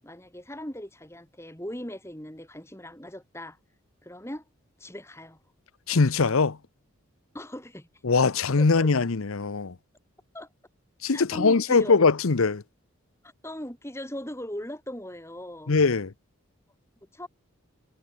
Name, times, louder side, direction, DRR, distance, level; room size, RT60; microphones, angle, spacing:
voice 1, 0.0-3.6 4.0-4.4 4.8-5.4 7.3-7.9 8.8-8.9 10.3-10.5 11.1-12.0 13.4-15.7 17.1-17.3, left 1 dB, 10° left, 4.1 m, -39 dB
voice 2, 5.9-6.6 8.0-9.7 11.0-12.6 15.7-16.1, left 4 dB, 75° left, 0.8 m, -22 dB
head